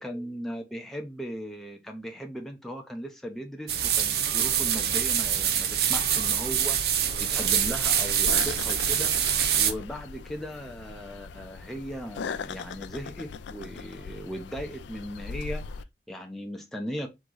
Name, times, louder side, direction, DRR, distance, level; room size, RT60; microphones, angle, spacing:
voice 1, 0.0-9.1 9.6-17.1, equal, ahead, 0.5 m, -38 dB
sound 1, 3.7-9.7, right 9 dB, 60° right, 0.6 m, -25 dB
sound 2, 7.1-15.8, left 5 dB, 85° left, 0.4 m, -39 dB
3.5 x 3.1 x 3.8 m
head